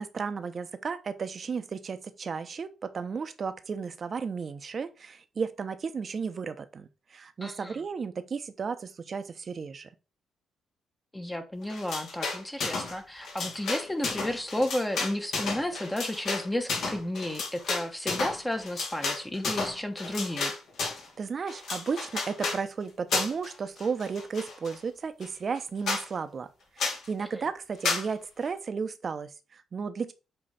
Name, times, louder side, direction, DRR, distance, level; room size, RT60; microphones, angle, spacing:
voice 1, 0.0-9.9 21.2-26.5 26.8-30.1, right 5 dB, 45° right, 0.9 m, -34 dB
voice 2, 7.4-7.8 11.1-20.5 27.2-27.5, left 1 dB, 10° left, 1.1 m, -32 dB
sound 1, 11.7-13.0 13.2-21.1 21.5-22.6 23.1-23.5 23.8-24.8 25.2-25.3 25.6-25.7 25.9-26.1 26.8-27.1 27.8-28.1, left 4 dB, 70° left, 2.6 m, -32 dB
7.8 x 3.2 x 4.2 m
cardioid pair, 75°, 0 cm